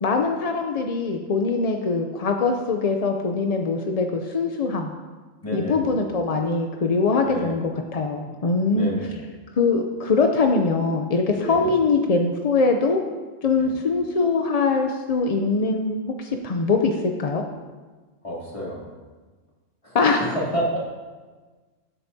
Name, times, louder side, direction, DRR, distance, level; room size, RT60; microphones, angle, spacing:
voice 1, 0.0-4.9 5.5-8.9 9.6-13.0 13.4-17.4 19.9-20.3, left 4 dB, 45° left, 3 dB, 0.5 m, -22 dB
voice 2, 5.4-6.0 7.2-7.6 8.3-8.4 8.7-9.1 11.3-11.7 13.6-13.7 18.2-18.9 19.8-20.0 20.3-20.8, equal, 25° left, -6 dB, 2.9 m, -29 dB
16.5 x 8.0 x 2.7 m, 1.3 s
omnidirectional pair, 1.3 m